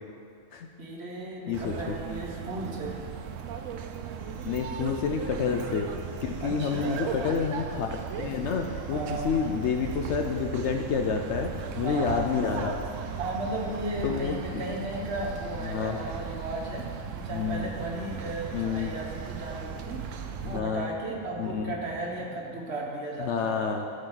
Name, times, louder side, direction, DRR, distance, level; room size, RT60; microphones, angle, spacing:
voice 1, 0.8-2.9 6.4-7.3 8.9-9.3 11.8-12.4 13.2-16.9 17.2-20.0 20.3-23.7, right 2 dB, 50° right, -2 dB, 1.4 m, -35 dB
voice 2, 1.5-2.0 4.4-11.5 11.8-12.8 14.0-14.8 15.6-16.0 17.3-17.7 18.5-18.9 20.4-20.9 21.4-21.8 23.2-23.9, left 6 dB, 65° left, 4 dB, 0.8 m, -29 dB
sound 1, 1.5-20.6, right 7 dB, 70° right, 0.9 m, -37 dB
sound 2, 4.2-22.7, left 3 dB, 40° left, 0.3 m, -49 dB
13.5 x 5.2 x 3.9 m, 2.5 s
omnidirectional pair, 1.4 m